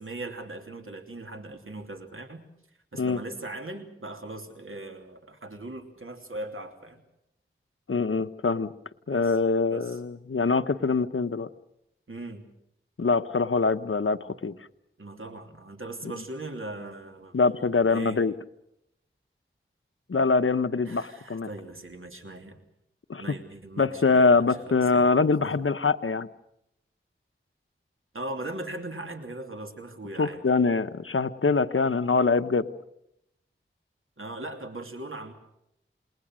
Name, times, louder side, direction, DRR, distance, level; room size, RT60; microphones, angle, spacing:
voice 1, 0.0-2.4 2.9-7.0 9.1-9.4 9.7-10.0 12.1-12.5 15.0-17.5 17.9-18.2 20.8-22.6 23.2-25.1 25.4-25.5 28.1-30.4 34.2-35.3, right 2 dB, 80° right, 5 dB, 2.9 m, -39 dB
voice 2, 7.9-8.7 9.1-11.5 13.0-14.5 17.3-18.3 20.1-21.5 23.1-23.2 23.8-26.3 30.2-32.7, left 4 dB, 80° left, 11 dB, 0.9 m, -24 dB
28.5 x 20.5 x 6.3 m, 0.79 s
wide cardioid pair, 55°, 21 cm